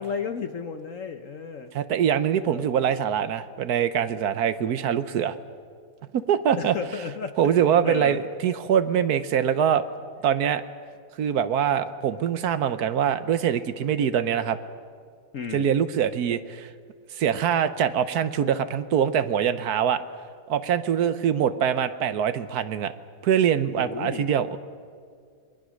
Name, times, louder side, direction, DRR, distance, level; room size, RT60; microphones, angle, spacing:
voice 1, 0.0-1.7 2.5-2.7 6.6-7.5 7.8-8.2 15.3-15.7 23.7-24.3, left 6 dB, 55° left, 8 dB, 0.9 m, -33 dB
voice 2, 1.7-5.4 6.1-6.7 7.4-9.8 10.2-10.6 11.2-14.6 15.5-16.7 17.2-20.0 20.5-22.9 23.2-24.6, right 8 dB, 60° right, 12 dB, 1.1 m, -23 dB
28.0 x 21.5 x 6.4 m, 2.2 s
omnidirectional pair, 2.3 m